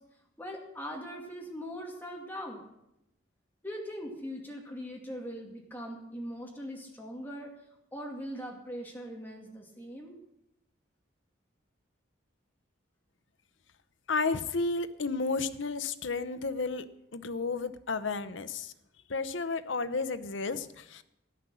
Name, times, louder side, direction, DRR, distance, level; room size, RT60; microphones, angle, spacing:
voice 1, 0.4-2.7 3.6-7.5 7.9-10.2, equal, 10° left, 0 dB, 2.3 m, -41 dB
voice 2, 14.1-16.9 17.1-18.7 19.1-21.0, left 4 dB, 75° left, 12 dB, 0.8 m, -32 dB
13.5 x 10.0 x 6.3 m, 0.84 s
head